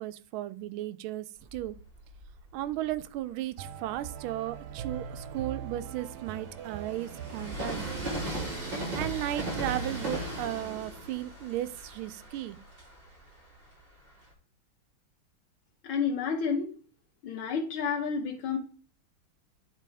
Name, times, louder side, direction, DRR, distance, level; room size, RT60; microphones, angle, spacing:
voice 1, 0.0-1.8 2.5-7.9 8.9-12.6, right 14 dB, 85° right, 1.4 m, -35 dB
Train, 1.4-3.1 3.7-14.3, right 1 dB, 25° right, 2.3 m, -39 dB
sound 1, 3.6-10.8, right 7 dB, 65° right, 0.9 m, -41 dB
voice 2, 15.8-16.7 17.2-18.6, left 6 dB, 80° left, 1.8 m, -30 dB
9.9 x 3.5 x 4.7 m
omnidirectional pair, 2.2 m